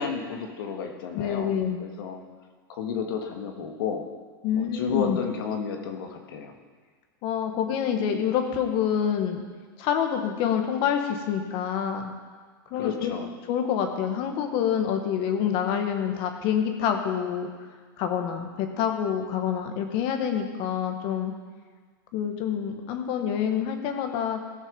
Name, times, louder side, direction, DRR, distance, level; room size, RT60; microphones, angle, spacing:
voice 1, 0.0-1.5 1.8-2.2 2.7-4.1 4.5-6.5 12.8-13.3, left 6 dB, 70° left, 4 dB, 1.8 m, -32 dB
voice 2, 1.1-1.9 4.4-5.2 7.2-9.4 9.8-12.1 12.7-13.1 13.5-17.5 18.0-21.3 22.1-24.4, left 8 dB, 45° left, 5 dB, 1.6 m, -27 dB
17.0 x 6.4 x 5.4 m, 1.5 s
supercardioid pair, 130°, 12 cm